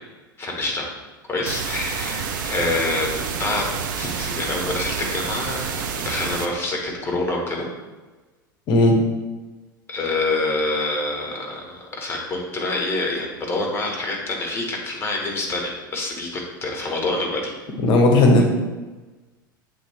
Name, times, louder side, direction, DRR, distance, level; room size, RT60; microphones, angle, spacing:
voice 1, 0.4-0.9 1.3-7.7 9.9-17.6, left 2 dB, 20° left, 0 dB, 1.7 m, -26 dB
sound 1, 1.5-6.5, right 6 dB, 65° right, 0.7 m, -28 dB
voice 2, 17.8-18.4, left 2 dB, 45° left, 2 dB, 1.2 m, -15 dB
7.6 x 3.7 x 3.6 m, 1.2 s
figure-of-eight pair, 80°, 11 cm